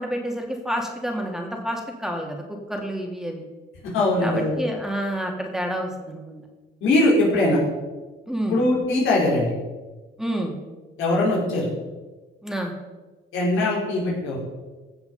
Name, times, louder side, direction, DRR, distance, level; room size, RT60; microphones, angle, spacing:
voice 1, 0.0-3.5 4.2-6.4 8.3-8.6 10.2-10.5 12.4-12.7, equal, ahead, 1 dB, 2.4 m, -29 dB
voice 2, 3.9-4.5 6.8-7.6 8.5-9.5 11.0-11.7 13.3-14.4, left 2 dB, 85° left, -4 dB, 4.5 m, -21 dB
15.5 x 7.1 x 5.4 m, 1.2 s
cardioid pair, 90°, 20 cm